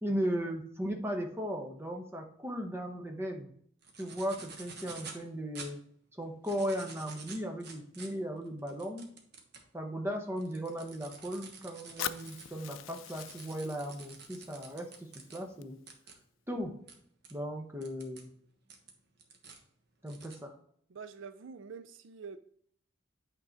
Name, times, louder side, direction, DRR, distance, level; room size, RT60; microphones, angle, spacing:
voice 1, 0.0-3.5 4.0-5.8 6.1-9.1 9.7-15.8 16.5-16.8 17.3-18.3 20.0-20.5, equal, 10° right, 3 dB, 0.9 m, -37 dB
sound 1, 3.8-5.2 5.5-5.7 6.3-9.7 10.1-15.4 15.9-16.1 16.9-17.0 17.2-17.3 17.8-18.2 18.7-19.6 20.1-20.4, right 5 dB, 55° right, 1.2 m, -49 dB
Fire, 12.0-16.0, left 11 dB, 90° left, 0.4 m, -44 dB
voice 2, 20.9-22.4, right 5 dB, 75° right, 12 dB, 0.4 m, -46 dB
8.6 x 3.8 x 4.0 m, 0.64 s
head